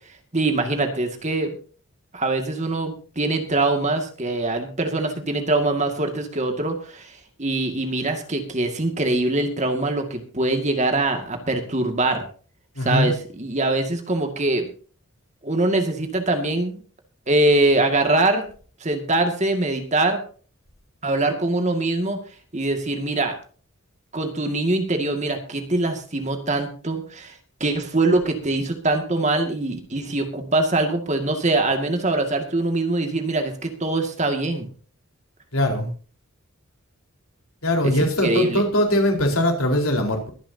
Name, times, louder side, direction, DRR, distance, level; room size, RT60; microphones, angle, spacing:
voice 1, 0.3-1.5 2.1-7.1 7.4-12.2 12.8-14.7 15.4-16.8 17.3-18.5 18.8-20.2 21.0-22.2 22.5-23.3 24.1-27.3 27.6-34.7 37.8-37.9 38.2-38.6, right 2 dB, 30° right, 5 dB, 2.1 m, -23 dB
voice 2, 12.8-13.1 35.5-35.9 37.6-40.3, left 1 dB, 75° left, 2 dB, 4.4 m, -21 dB
23.0 x 10.5 x 2.8 m, 0.40 s
head